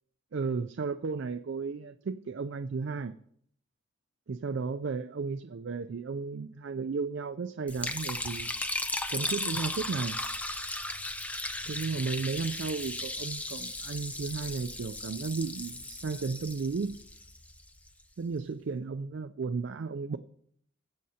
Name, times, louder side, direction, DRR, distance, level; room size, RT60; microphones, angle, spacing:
voice 1, 0.3-3.2 4.3-8.5 9.1-10.2 11.7-17.0 18.2-20.2, right 4 dB, 60° right, 0.4 m, -34 dB
Liquid, 7.7-17.9, left 2 dB, 5° left, 0.5 m, -36 dB
20.5 x 7.5 x 2.8 m
head